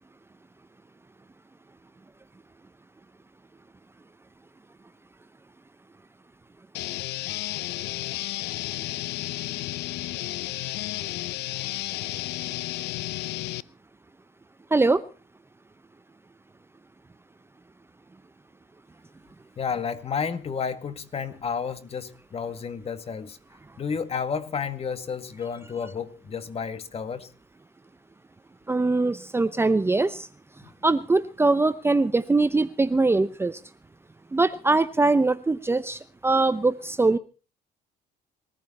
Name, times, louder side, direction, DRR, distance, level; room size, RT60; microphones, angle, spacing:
sound 1, 6.7-13.6, left 17 dB, 80° left, 0.7 m, -32 dB
voice 1, 14.7-15.0 28.7-30.3 30.8-33.6 34.3-37.2, right 3 dB, 15° right, 0.8 m, -22 dB
voice 2, 19.6-23.4 23.8-27.3 30.6-30.7, left 6 dB, 35° left, 2.0 m, -31 dB
21.0 x 14.5 x 4.3 m
cardioid pair, 110°, 17 cm